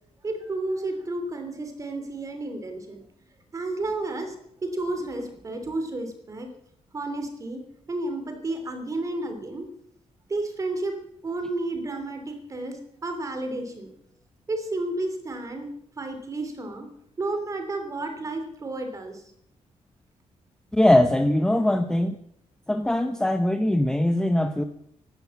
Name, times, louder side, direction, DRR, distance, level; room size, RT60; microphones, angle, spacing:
voice 1, 0.2-3.0 3.5-4.3 4.6-6.5 6.9-7.6 7.9-9.7 10.3-10.9 11.2-13.9 14.5-15.7 16.0-16.9 17.2-19.2, right 2 dB, 25° right, 6 dB, 3.1 m, -31 dB
voice 2, 20.7-22.2 22.7-24.6, left 1 dB, 5° left, 8 dB, 0.7 m, -21 dB
16.5 x 12.0 x 7.1 m, 0.71 s
wide cardioid pair, 175°, 12 cm